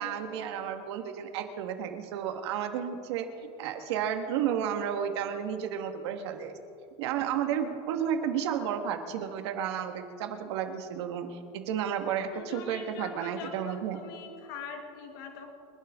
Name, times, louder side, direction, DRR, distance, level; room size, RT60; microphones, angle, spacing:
voice 1, 0.0-3.3 3.6-6.5 7.0-14.0, right 8 dB, 60° right, 6 dB, 1.6 m, -32 dB
voice 2, 12.3-15.5, left 6 dB, 50° left, 3 dB, 2.1 m, -43 dB
26.0 x 12.0 x 3.7 m, 2.4 s
supercardioid pair, 180°, 15 cm